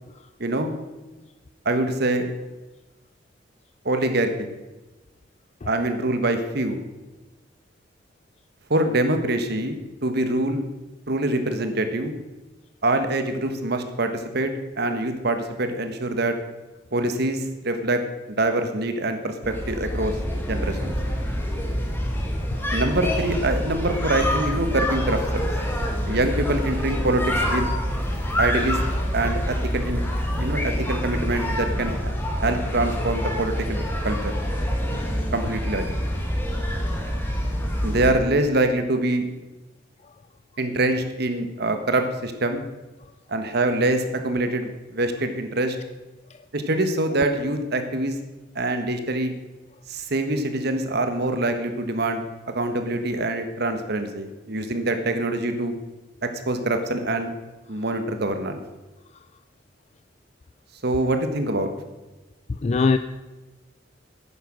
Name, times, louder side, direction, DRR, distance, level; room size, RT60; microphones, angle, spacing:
voice 1, 0.4-0.7 1.6-2.3 3.8-4.3 5.6-6.8 8.7-10.6 11.1-12.2 12.8-16.3 16.9-18.0 18.3-20.1 20.5-20.9 22.7-25.5 26.1-27.7 28.4-28.8 29.1-30.0 30.3-32.1 32.4-34.3 35.3-36.1 37.8-39.3 40.6-42.6 43.3-45.8 46.5-48.2 48.5-49.3 49.9-52.2 52.5-55.7 56.2-57.3 57.7-58.6 60.8-61.7, right 2 dB, 60° right, 7 dB, 1.3 m, -24 dB
sound 1, 19.4-38.1, equal, 10° left, 2.0 m, -26 dB
voice 2, 62.6-63.0, left 4 dB, 35° left, 10 dB, 0.4 m, -23 dB
10.5 x 9.2 x 6.3 m, 1.1 s
head